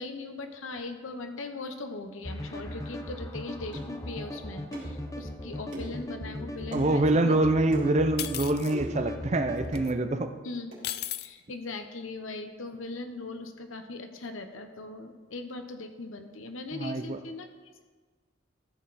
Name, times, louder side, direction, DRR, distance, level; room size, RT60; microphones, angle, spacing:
voice 1, 0.0-7.4 10.4-10.7 11.1-17.5, left 3 dB, 80° left, 7 dB, 1.0 m, -39 dB
sound 1, 2.2-9.8, left 1 dB, 15° left, 0.7 m, -38 dB
sound 2, 3.7-3.9 4.7-5.0 5.7-6.0 6.7-6.9 7.7-7.9 8.7-9.0 9.7-9.9 10.7-10.9, right 1 dB, 70° right, 3.4 m, -41 dB
voice 2, 6.7-10.3 16.7-17.2, right 2 dB, 35° right, 8 dB, 0.6 m, -25 dB
sound 3, 8.2-8.7 9.8-9.9 10.8-11.3, left 13 dB, 55° left, 0.4 m, -34 dB
14.0 x 6.7 x 4.2 m, 1.4 s
head